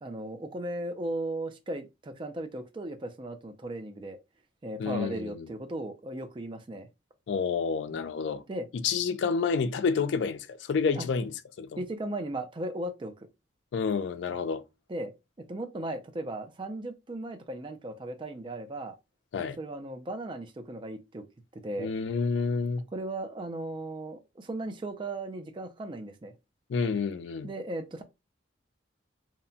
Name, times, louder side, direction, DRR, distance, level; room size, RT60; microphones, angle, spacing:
voice 1, 0.0-4.2 4.6-6.9 7.9-8.0 8.5-8.7 11.0-11.1 11.8-13.1 14.9-15.1 15.5-18.9 19.4-21.2 21.5-21.9 22.9-26.3 27.4-28.0, right 1 dB, 25° right, 0.3 m, -36 dB
voice 2, 4.8-5.5 7.3-8.4 8.7-11.8 13.7-14.6 19.3-19.6 21.8-22.8 26.7-27.5, left 5 dB, 75° left, 0.3 m, -29 dB
2.8 x 2.1 x 2.6 m
head